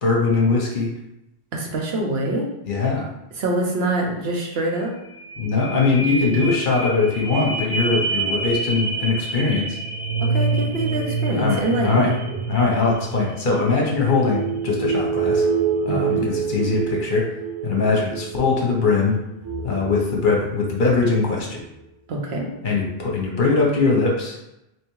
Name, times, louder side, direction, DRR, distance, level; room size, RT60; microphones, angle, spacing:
voice 1, 0.0-0.9 2.7-3.1 5.4-9.8 11.3-12.1 12.5-15.5 15.8-17.2 17.6-19.2 19.6-21.6 22.6-24.4, left 4 dB, 55° left, -1 dB, 0.9 m, -21 dB
voice 2, 1.5-2.5 3.4-4.9 10.2-12.2 15.9-16.3 22.1-22.5, right 1 dB, 75° right, -1 dB, 1.0 m, -25 dB
sound 1, 4.7-4.8 5.0-21.0 21.5-21.6, right 4 dB, 25° right, 1.2 m, -27 dB
3.4 x 3.0 x 3.0 m, 0.86 s
omnidirectional pair, 1.0 m